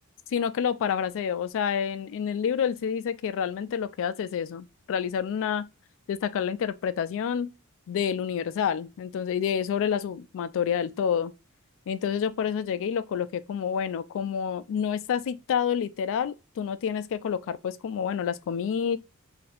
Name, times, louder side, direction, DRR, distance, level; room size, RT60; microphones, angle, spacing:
voice 1, 0.3-5.7 6.1-7.5 7.9-11.3 11.9-19.0, left 7 dB, 60° left, 0.3 m, -28 dB
3.3 x 2.7 x 2.4 m
head